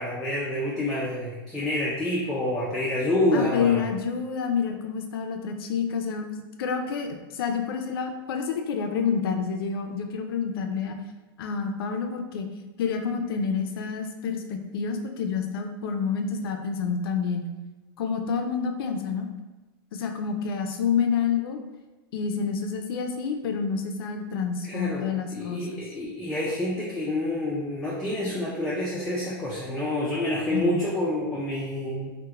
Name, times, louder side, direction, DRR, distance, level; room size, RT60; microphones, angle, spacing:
voice 1, 0.0-3.8 24.6-25.0 25.3-32.1, left 1 dB, 5° left, -7 dB, 0.3 m, -28 dB
voice 2, 3.3-11.0 11.4-12.5 12.8-17.5 18.0-19.3 19.9-21.6 22.1-25.7 30.5-30.8, left 6 dB, 80° left, 4 dB, 0.4 m, -28 dB
2.4 x 2.1 x 2.9 m, 1.2 s
supercardioid pair, 135°, 12 cm